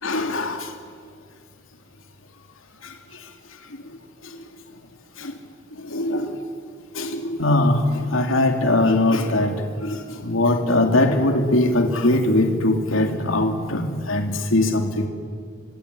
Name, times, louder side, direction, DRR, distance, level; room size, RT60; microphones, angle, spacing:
voice 1, 0.0-0.7 2.8-2.9 5.2-5.3 5.8-6.4 6.9-15.1, left 1 dB, 80° left, 5 dB, 2.7 m, -21 dB
25.5 x 24.0 x 9.8 m, 2.1 s
head